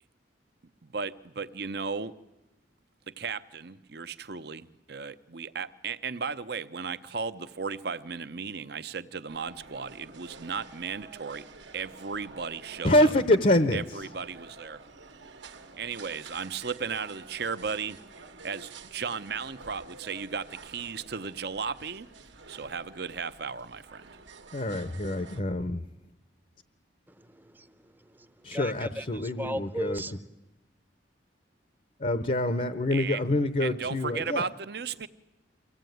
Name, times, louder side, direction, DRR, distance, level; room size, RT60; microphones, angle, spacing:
voice 1, 0.8-2.1 3.1-11.5 11.7-13.1 13.7-14.8 15.8-18.0 18.4-22.1 22.5-24.0 24.5-24.7 25.3-25.4 32.9-33.2 33.6-35.1, right 5 dB, 55° right, 0.8 m, -35 dB
sound 1, 9.3-25.4, right 4 dB, 75° right, 1.5 m, -49 dB
voice 2, 12.8-13.8 24.5-25.8 28.4-30.0 32.0-34.5, left 1 dB, 40° left, 0.8 m, -26 dB
voice 3, 27.4-30.2, equal, 10° right, 0.7 m, -37 dB
24.0 x 16.5 x 9.3 m
head